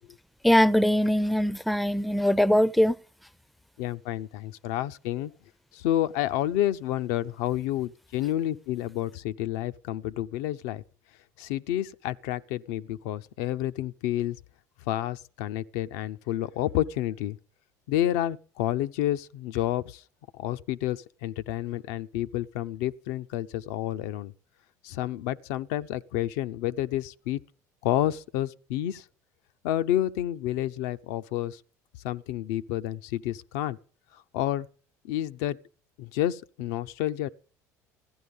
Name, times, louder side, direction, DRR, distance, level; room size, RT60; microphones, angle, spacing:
voice 1, 0.4-3.0, equal, ahead, 0.5 m, -21 dB
voice 2, 3.8-5.3 5.7-10.8 11.4-14.4 14.9-17.4 17.9-20.0 20.3-24.3 24.8-27.4 27.8-29.0 29.6-31.6 32.0-33.8 34.1-34.7 35.0-35.6 36.0-37.3, left 13 dB, 75° left, 0.6 m, -29 dB
15.0 x 11.0 x 5.3 m
hypercardioid pair, 70°, 9 cm